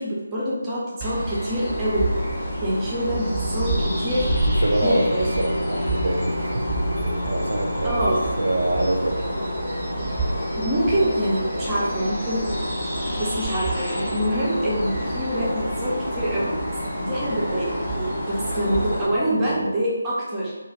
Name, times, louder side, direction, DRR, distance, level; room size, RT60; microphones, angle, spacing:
voice 1, 0.0-2.1 2.6-3.7 4.0-4.3 4.8-5.3 7.8-8.5 10.6-12.5 13.2-16.5 17.0-20.5, equal, 15° right, -7 dB, 0.6 m, -25 dB
sound 1, 1.0-19.0, right 1 dB, 15° left, 1.0 m, -29 dB
sound 2, 1.4-19.7, left 1 dB, 75° left, 0.7 m, -32 dB
sound 3, 4.4-14.3, equal, 35° left, 1.1 m, -39 dB
voice 2, 4.5-9.2, right 1 dB, 60° right, 2 dB, 0.4 m, -26 dB
2.4 x 2.3 x 3.0 m, 1.1 s
figure-of-eight pair, 155°, 0 cm